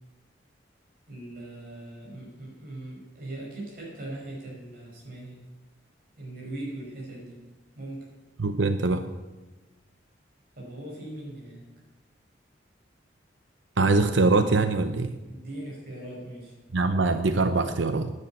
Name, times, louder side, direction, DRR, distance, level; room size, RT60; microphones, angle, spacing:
voice 1, 1.1-5.4 6.2-7.4 7.7-8.1 10.5-11.6 15.3-16.5, right 1 dB, 50° right, -3 dB, 5.3 m, -40 dB
voice 2, 8.4-9.1 13.8-15.2 16.7-18.1, right 3 dB, 75° right, 9 dB, 0.7 m, -23 dB
10.5 x 9.7 x 9.0 m, 1.1 s
head